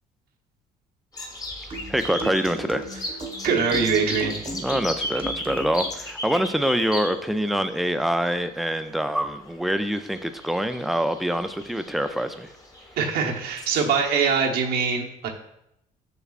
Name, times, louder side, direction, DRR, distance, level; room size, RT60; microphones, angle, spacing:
sound 1, 1.1-14.4, left 1 dB, 20° left, 1.2 m, -36 dB
sound 2, 1.7-6.0, right 2 dB, 30° right, 1.0 m, -37 dB
voice 1, 1.9-2.9 4.5-12.5, equal, ahead, 9 dB, 0.4 m, -25 dB
voice 2, 3.4-4.4 13.0-15.3, right 5 dB, 70° right, 1 dB, 1.1 m, -23 dB
6.7 x 6.1 x 2.4 m, 0.80 s
cardioid pair, 110°, 17 cm